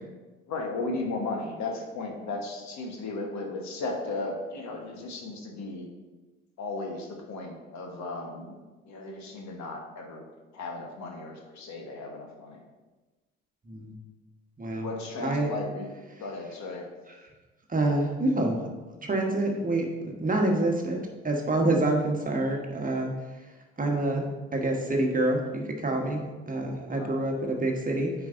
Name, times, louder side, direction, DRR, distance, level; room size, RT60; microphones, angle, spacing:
voice 1, 0.5-5.9 6.6-10.3 10.5-12.6 14.8-15.9 16.2-16.9 26.9-27.1, left 3 dB, 60° left, 1 dB, 1.3 m, -35 dB
voice 2, 14.6-14.9 15.2-15.5 17.7-18.6 19.0-19.9 20.2-23.1 23.8-28.1, right 2 dB, 25° right, 1 dB, 1.3 m, -27 dB
9.1 x 4.7 x 2.6 m, 1.2 s
hypercardioid pair, 55°, 33 cm